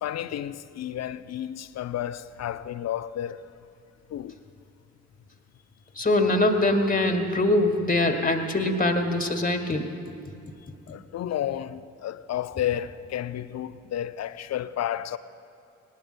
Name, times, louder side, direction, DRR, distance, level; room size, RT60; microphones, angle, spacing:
voice 1, 0.0-3.4 4.1-4.4 10.9-15.2, left 11 dB, 45° left, 0.6 m, -31 dB
voice 2, 5.9-9.9, left 2 dB, 25° left, 1.7 m, -23 dB
19.5 x 18.5 x 2.2 m
hypercardioid pair, 40°, 37 cm